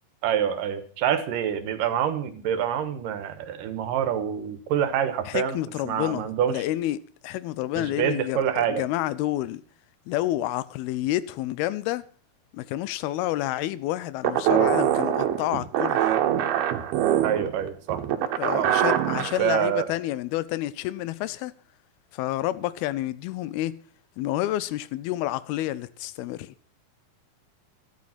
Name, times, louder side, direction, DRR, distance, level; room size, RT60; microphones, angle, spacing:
voice 1, 0.2-5.6 5.8-6.5 7.8-8.8 17.2-18.0 18.5-18.7 19.4-19.9, right 9 dB, 70° right, 2.8 m, -26 dB
voice 2, 5.3-9.6 10.1-12.0 12.5-16.1 18.2-21.5 22.1-23.8 24.2-26.5, left 15 dB, 90° left, 2.7 m, -29 dB
sound 1, 14.2-19.4, right 11 dB, 85° right, 3.1 m, -24 dB
12.5 x 11.5 x 5.9 m
omnidirectional pair, 4.3 m